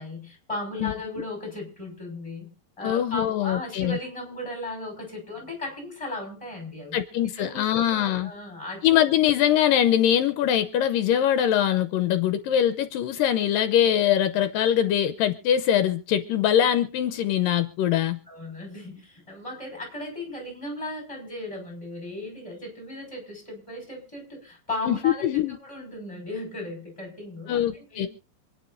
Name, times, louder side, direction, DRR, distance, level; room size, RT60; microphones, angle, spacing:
voice 1, 0.0-2.5 2.8-7.0 7.4-7.7 7.9-9.1 18.3-28.1, left 2 dB, 10° left, 5.5 m, -36 dB
voice 2, 2.8-4.0 6.9-8.3 8.8-18.2 24.9-25.6 27.5-28.1, left 10 dB, 80° left, 2.5 m, -23 dB
27.0 x 9.7 x 2.6 m
omnidirectional pair, 4.0 m